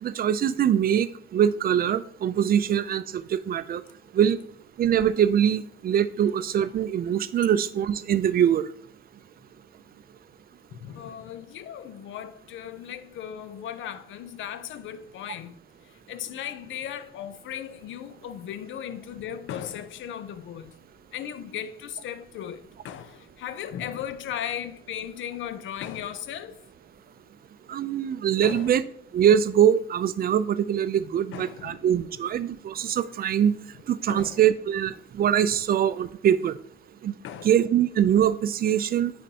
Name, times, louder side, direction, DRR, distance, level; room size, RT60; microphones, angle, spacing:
voice 1, 0.0-1.1 1.3-3.8 4.1-4.4 4.8-8.7 27.7-28.8 29.1-33.6 33.9-36.5 37.0-37.1 37.4-39.1, right 9 dB, 50° right, 0.4 m, -23 dB
voice 2, 10.7-15.6 16.1-20.8 21.1-26.6 28.4-28.7 31.3-31.9 34.1-34.4 37.2-37.5, left 10 dB, 75° left, 0.6 m, -37 dB
9.8 x 4.3 x 2.8 m
cardioid pair, 90°, 20 cm